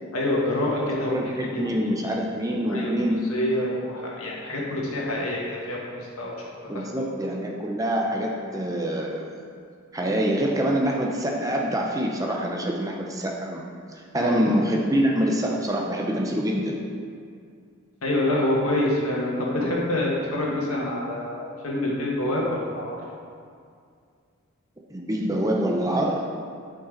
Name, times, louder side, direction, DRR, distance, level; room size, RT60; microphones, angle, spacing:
voice 1, 0.1-1.7 2.1-2.2 2.7-2.9 3.3-6.3 6.7-6.9 14.1-14.4 18.0-23.0, left 1 dB, 85° left, -4 dB, 1.7 m, -26 dB
voice 2, 1.1-3.3 6.7-9.3 9.9-13.7 13.9-16.7 24.9-26.2, equal, 15° right, -1 dB, 0.7 m, -25 dB
12.5 x 5.4 x 3.9 m, 2.3 s
head